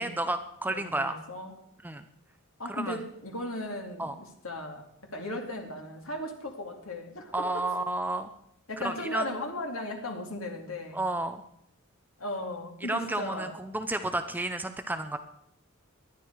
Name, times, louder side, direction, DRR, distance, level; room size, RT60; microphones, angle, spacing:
voice 1, 0.0-1.1 1.8-2.0 2.7-3.0 4.0-4.1 7.3-8.3 8.8-9.3 10.9-11.4 12.9-15.2, right 2 dB, 10° right, 8 dB, 0.7 m, -31 dB
voice 2, 0.7-1.5 2.6-7.7 8.7-11.0 12.2-13.5, left 1 dB, 85° left, 3 dB, 2.6 m, -37 dB
19.0 x 12.0 x 4.7 m, 0.74 s
head